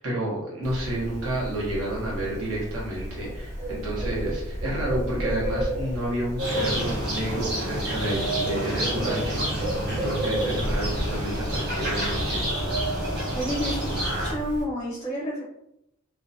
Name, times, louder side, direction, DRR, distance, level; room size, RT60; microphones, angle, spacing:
voice 1, 0.0-12.5, right 1 dB, 85° right, -5 dB, 0.8 m, -30 dB
Bird, 0.6-14.6, equal, 15° right, 0.8 m, -33 dB
sound 1, 6.4-14.3, right 1 dB, 50° right, 1.0 m, -28 dB
voice 2, 13.3-13.9 14.2-15.4, equal, 15° left, -5 dB, 0.5 m, -30 dB
2.5 x 2.1 x 2.6 m, 0.81 s
head